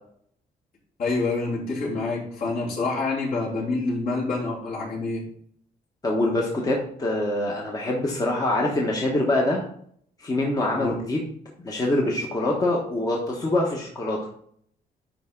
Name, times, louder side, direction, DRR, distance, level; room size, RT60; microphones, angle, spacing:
voice 1, 1.0-5.2 10.7-11.0, left 3 dB, 60° left, -5 dB, 3.3 m, -27 dB
voice 2, 6.0-9.6 10.2-11.3 11.6-14.2, left 1 dB, 20° left, -2 dB, 1.2 m, -24 dB
10.5 x 4.3 x 3.7 m, 0.63 s
cardioid pair, 155°, 16 cm